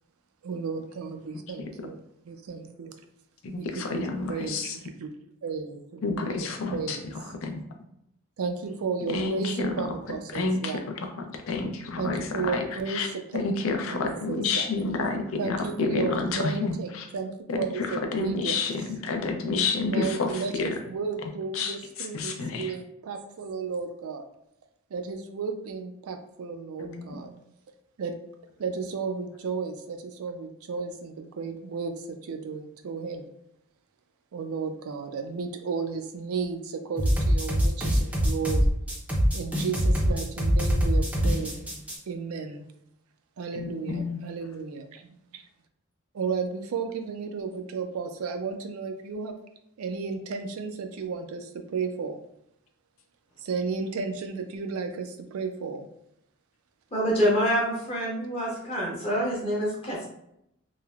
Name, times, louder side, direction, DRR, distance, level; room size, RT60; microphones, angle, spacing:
voice 1, 0.4-2.0 2.2-2.9 3.6-5.1 5.4-6.3 6.7-7.4 8.4-10.8 12.0-13.6 13.9-14.7 15.4-18.6 19.8-24.2 24.9-27.3 28.0-28.2 28.6-33.3 34.3-38.7 39.3-41.6 42.1-42.6 43.4-45.4 46.1-49.4 49.8-52.2 53.4-55.9, right 5 dB, 85° right, 6 dB, 0.4 m, -33 dB
voice 2, 3.4-4.8 6.0-7.6 9.1-9.8 10.3-11.1 11.5-13.1 13.3-17.1 17.5-20.7 21.5-21.7 22.1-22.7 26.8-27.2 43.6-44.2, left 4 dB, 70° left, 4 dB, 0.4 m, -29 dB
sound 1, 37.0-42.0, equal, 5° right, 0.4 m, -23 dB
voice 3, 56.9-60.1, equal, 25° left, -5 dB, 0.7 m, -26 dB
3.1 x 2.0 x 2.3 m, 0.77 s
head